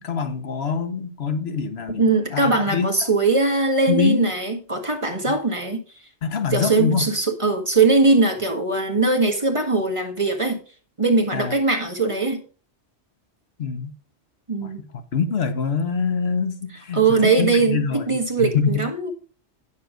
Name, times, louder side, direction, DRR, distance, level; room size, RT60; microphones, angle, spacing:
voice 1, 0.0-2.0 2.3-2.9 3.9-4.3 6.2-7.0 11.3-11.5 13.6-13.9 14.6-14.7 15.1-18.0 18.5-18.8, left 6 dB, 65° left, 1.2 m, -24 dB
voice 2, 2.0-5.8 6.5-10.6 11.0-12.4 14.5-14.8 16.7-19.1, right 3 dB, 25° right, 1.7 m, -20 dB
9.3 x 7.0 x 5.0 m
omnidirectional pair, 1.2 m